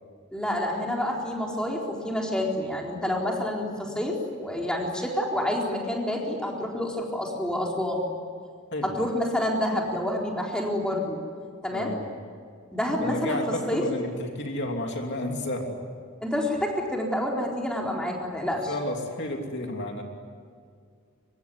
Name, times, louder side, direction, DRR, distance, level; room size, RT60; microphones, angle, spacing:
voice 1, 0.3-8.0 8.8-11.2 11.6-11.9 12.7-13.4 13.7-13.9 16.2-18.7, left 1 dB, 5° left, -1 dB, 4.2 m, -28 dB
voice 2, 11.7-12.1 13.0-15.8 18.5-20.0, left 1 dB, 50° left, 2 dB, 3.0 m, -31 dB
25.0 x 23.5 x 9.6 m, 2.1 s
head